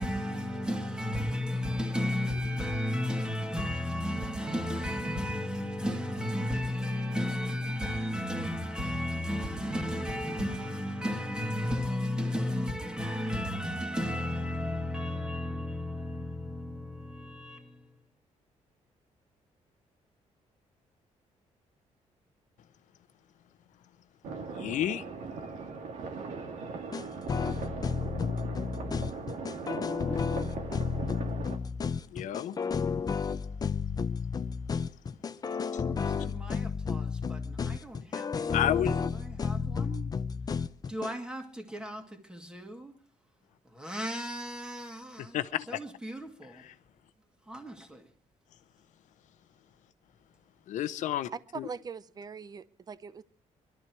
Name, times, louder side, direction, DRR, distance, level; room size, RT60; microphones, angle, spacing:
voice 1, 0.0-18.0 35.9-38.6 39.0-40.1 40.9-42.9 43.6-45.4 45.7-46.7 47.5-48.1, left 1 dB, 5° right, 2.3 m, -34 dB
sound 1, 24.2-31.6, right 4 dB, 80° right, 2.1 m, -39 dB
voice 2, 24.6-25.0 32.1-32.6 35.7-35.8 38.5-38.9 45.3-45.7 50.7-51.3 51.6-51.7, left 11 dB, 80° left, 0.9 m, -30 dB
sound 2, 26.9-41.1, left 5 dB, 30° left, 0.6 m, -32 dB
voice 3, 51.3-53.2, right 5 dB, 30° right, 0.7 m, -41 dB
21.5 x 12.5 x 4.6 m
cardioid pair, 125°, 13 cm